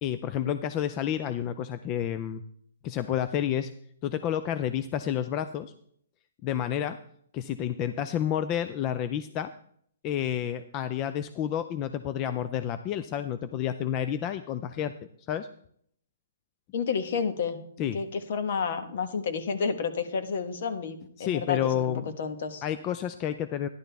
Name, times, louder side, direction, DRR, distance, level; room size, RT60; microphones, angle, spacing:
voice 1, 0.0-2.4 2.8-3.7 4.0-5.7 6.4-7.0 7.3-9.5 10.0-14.9 15.3-15.5 17.8-18.0 21.2-22.0 22.6-23.7, left 10 dB, 30° left, 11 dB, 0.4 m, -30 dB
voice 2, 16.7-17.6 17.9-21.9 22.2-22.6, left 5 dB, 60° left, 8 dB, 1.3 m, -30 dB
11.5 x 11.0 x 3.4 m, 0.65 s
hypercardioid pair, 135°, 0 cm